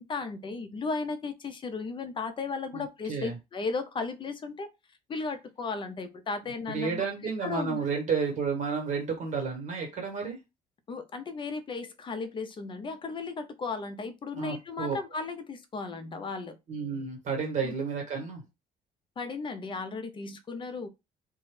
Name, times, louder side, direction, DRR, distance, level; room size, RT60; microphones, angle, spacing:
voice 1, 0.0-4.7 5.1-7.1 7.4-7.8 10.9-16.6 17.6-17.7 19.2-20.9, left 4 dB, 30° left, 0.5 m, -35 dB
voice 2, 2.7-3.3 6.7-10.4 14.3-15.0 16.7-18.4, right 5 dB, 45° right, 1.4 m, -31 dB
2.5 x 2.2 x 3.2 m
cardioid pair, 110°, 17 cm